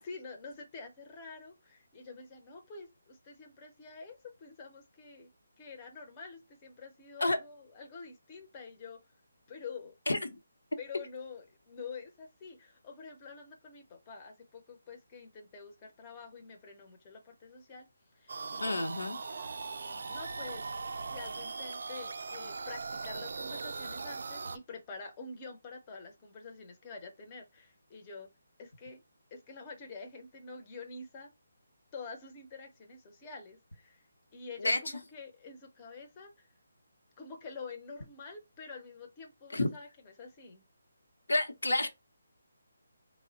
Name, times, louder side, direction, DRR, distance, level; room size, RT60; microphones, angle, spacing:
voice 1, 0.0-5.3 5.6-9.0 9.5-9.9 10.8-17.9 18.2-20.6 21.1-28.3 28.6-29.0 29.3-31.3 31.9-34.0 34.3-36.5 37.2-40.6, left 4 dB, 25° left, 0.6 m, -47 dB
sound 1, 18.3-24.6, right 4 dB, 65° right, 0.3 m, -40 dB
voice 2, 18.6-19.2 34.6-34.8 39.5-39.7 41.3-41.9, left 2 dB, 85° left, 0.8 m, -29 dB
3.5 x 2.0 x 3.9 m
figure-of-eight pair, 155°, 0 cm